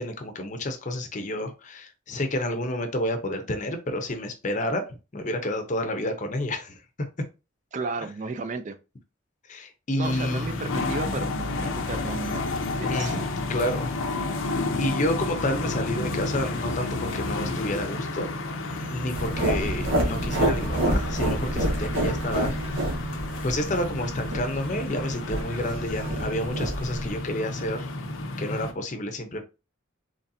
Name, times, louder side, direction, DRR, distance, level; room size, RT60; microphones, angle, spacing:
voice 1, 0.0-4.9 5.1-6.8 9.5-10.7 12.9-14.0 14.8-18.3 18.9-22.9 23.4-27.9 28.4-29.4, left 1 dB, 40° left, 0.6 m, -30 dB
voice 2, 7.7-8.8 10.0-13.2, right 4 dB, 35° right, 0.3 m, -34 dB
sound 1, 10.0-28.7, left 2 dB, 80° left, 0.6 m, -31 dB
sound 2, 19.1-27.2, right 1 dB, 80° right, 1.4 m, -28 dB
4.0 x 3.1 x 2.6 m
head